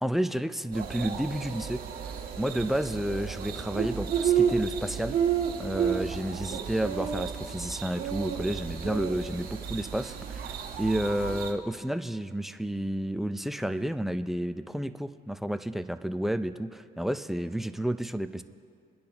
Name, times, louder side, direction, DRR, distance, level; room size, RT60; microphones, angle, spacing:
voice 1, 0.0-1.8 2.4-5.2 5.6-18.4, right 1 dB, ahead, 9 dB, 0.5 m, -31 dB
sound 1, 0.7-11.5, right 8 dB, 60° right, 1.5 m, -31 dB
28.0 x 10.0 x 2.9 m, 2.3 s
cardioid pair, 110°, 17 cm